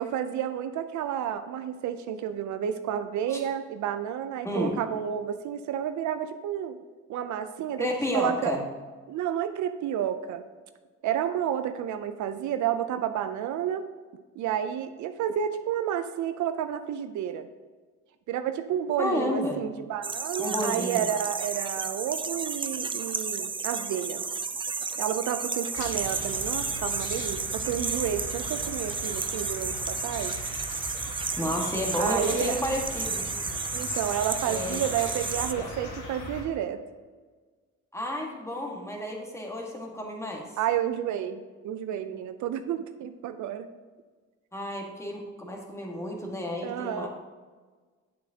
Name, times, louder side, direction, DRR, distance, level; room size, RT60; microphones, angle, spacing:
voice 1, 0.0-6.8 7.1-7.9 8.1-8.5 9.1-10.4 11.0-13.9 14.4-17.5 18.3-24.2 25.0-30.4 32.0-32.6 33.7-36.8 40.6-43.7 46.6-47.1, right 9 dB, 75° right, 10 dB, 0.5 m, -30 dB
voice 2, 4.4-4.8 7.8-8.6 19.0-19.6 20.4-21.1 31.4-33.2 34.5-34.8 35.5-35.9 37.9-40.5 44.5-47.1, left 1 dB, 10° left, 0 dB, 1.6 m, -31 dB
sound 1, 20.0-35.5, right 5 dB, 15° right, 0.4 m, -32 dB
sound 2, 25.7-36.4, left 2 dB, 80° left, 1.7 m, -39 dB
8.6 x 7.3 x 2.8 m, 1.4 s
cardioid pair, 90°, 30 cm